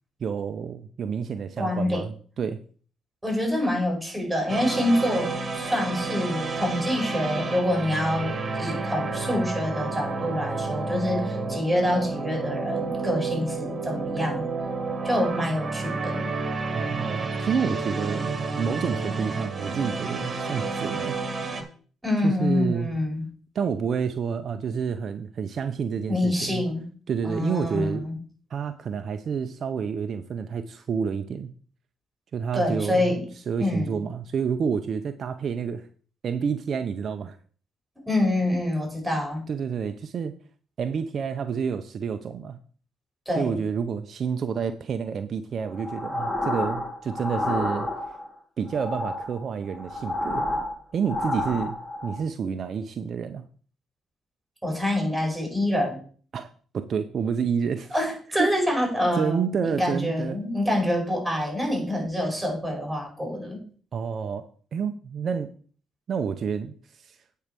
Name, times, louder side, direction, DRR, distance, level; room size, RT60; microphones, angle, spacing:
voice 1, 0.2-2.6 16.7-21.2 22.2-22.9 23.5-26.7 27.1-28.1 28.5-31.5 32.3-33.2 33.5-35.9 36.2-37.4 39.5-40.4 40.8-42.6 43.4-47.9 48.6-50.5 50.9-51.8 52.0-53.5 56.3-58.0 58.4-58.5 59.2-60.4 63.9-65.5 66.1-67.2, right 6 dB, 55° right, 8 dB, 0.6 m, -29 dB
voice 2, 1.6-2.0 3.2-14.4 15.0-16.4 22.0-23.2 26.1-26.9 27.2-28.1 32.5-33.2 33.6-34.0 38.0-39.4 43.2-43.6 54.6-56.0 57.9-63.6, left 1 dB, 5° right, 2 dB, 5.1 m, -26 dB
sound 1, 4.5-21.6, right 3 dB, 30° right, 1.8 m, -30 dB
sound 2, 45.7-48.3 48.7-52.2, left 1 dB, 20° left, 2.6 m, -30 dB
8.7 x 4.6 x 6.8 m, 0.43 s
cardioid pair, 80°, 0 cm